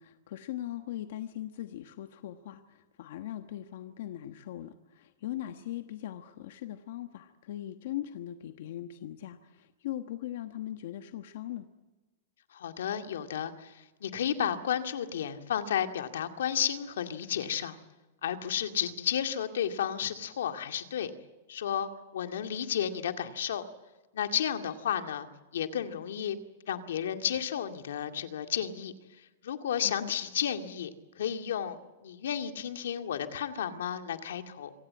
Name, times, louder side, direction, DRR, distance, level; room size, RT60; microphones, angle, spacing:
voice 1, 0.0-11.7 29.8-30.1, left 13 dB, 55° left, 8 dB, 1.2 m, -40 dB
voice 2, 12.5-13.7 14.0-17.8 18.2-21.1 21.5-23.6 24.1-25.3 25.5-26.4 26.7-28.9 29.4-30.9 31.2-34.7, left 9 dB, 85° left, 7 dB, 2.1 m, -32 dB
26.0 x 17.0 x 8.6 m, 1.2 s
supercardioid pair, 170°, 0 cm